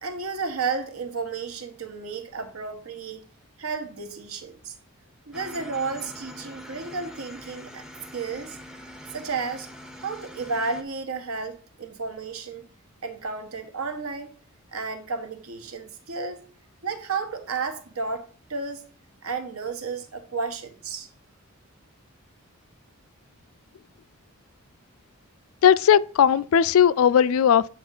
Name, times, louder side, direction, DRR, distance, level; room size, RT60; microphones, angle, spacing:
voice 1, 0.0-3.3 3.6-4.7 5.3-7.8 8.1-8.6 9.1-9.7 10.0-12.7 13.0-14.3 14.7-16.5 16.8-18.8 19.2-21.1, right 4 dB, 80° right, 1.1 m, -32 dB
sound 1, 5.3-10.8, equal, 5° right, 0.5 m, -43 dB
voice 2, 25.6-27.7, left 8 dB, 70° left, 0.3 m, -18 dB
8.5 x 3.1 x 5.4 m
head